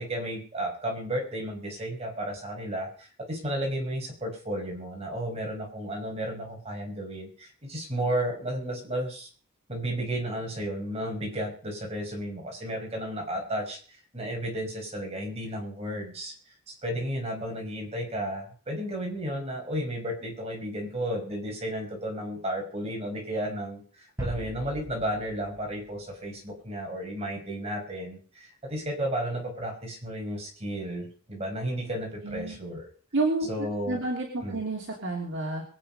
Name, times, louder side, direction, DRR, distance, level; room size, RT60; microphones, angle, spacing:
voice 1, 0.0-9.3 9.7-13.8 14.1-16.3 16.7-32.9 33.5-34.0 34.4-34.6, right 1 dB, 30° right, 0 dB, 5.3 m, -33 dB
sound 1, 24.2-26.7, right 1 dB, 15° right, 4.9 m, -40 dB
voice 2, 32.2-32.6 33.1-35.6, right 2 dB, 60° right, -1 dB, 2.8 m, -30 dB
23.0 x 8.5 x 5.4 m, 0.43 s
head